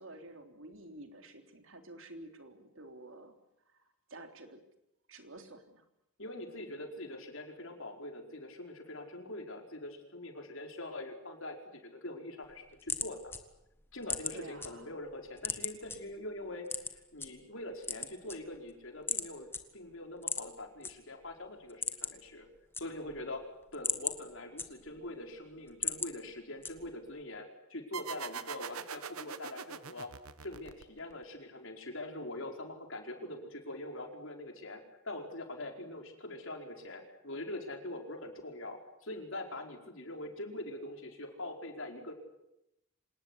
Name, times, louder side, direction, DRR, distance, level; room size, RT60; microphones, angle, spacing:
voice 1, 0.0-3.4 4.1-4.6 5.1-5.9 14.3-14.9, right 2 dB, 60° right, 6 dB, 3.5 m, -50 dB
voice 2, 6.2-13.3 13.9-22.5 22.8-23.4 23.7-30.1 30.4-42.1, left 1 dB, 60° left, 3 dB, 4.9 m, -43 dB
sound 1, 12.4-14.7 15.0-16.0 16.7-17.3 17.7-18.7 19.1-19.3 19.5-19.6 20.2-20.9 21.3-21.4 21.6-22.3 22.6-23.2 23.6-25.1 25.5-26.1 26.6-27.1, left 4 dB, 10° left, 1.7 m, -36 dB
sound 2, 27.9-31.2, right 7 dB, 80° right, 1.2 m, -43 dB
26.5 x 19.5 x 9.9 m, 0.87 s
head